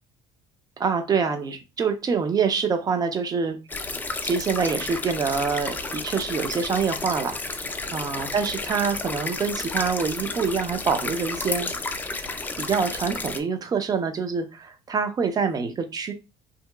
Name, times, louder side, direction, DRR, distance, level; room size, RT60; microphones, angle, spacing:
voice 1, 0.8-3.6 4.2-7.4 7.9-11.7 12.6-16.1, right 5 dB, 30° right, 8 dB, 0.6 m, -25 dB
sound 1, 3.7-13.4, left 3 dB, 15° left, 0.4 m, -32 dB
2.8 x 2.8 x 2.3 m, 0.28 s
supercardioid pair, 105°, 12 cm